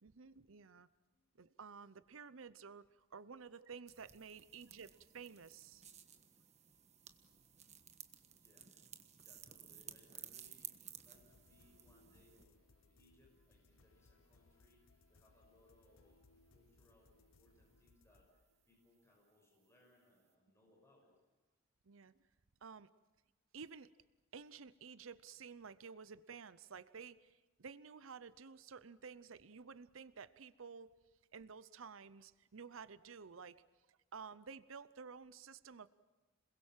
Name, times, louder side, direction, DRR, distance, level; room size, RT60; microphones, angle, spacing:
voice 1, 0.0-0.9 1.4-5.8 21.8-22.1 22.6-22.9 23.5-23.9 24.3-30.9 31.3-33.6 33.9-35.9, right 5 dB, 80° right, 16 dB, 0.7 m, -53 dB
sound 1, 3.9-12.5, right 9 dB, 35° right, 1.3 m, -56 dB
voice 2, 8.3-8.7 9.2-21.1, left 1 dB, 15° left, -1 dB, 6.0 m, -71 dB
sound 2, 11.1-19.2, left 3 dB, 80° left, 0.9 m, -69 dB
27.5 x 21.5 x 7.4 m, 1.2 s
head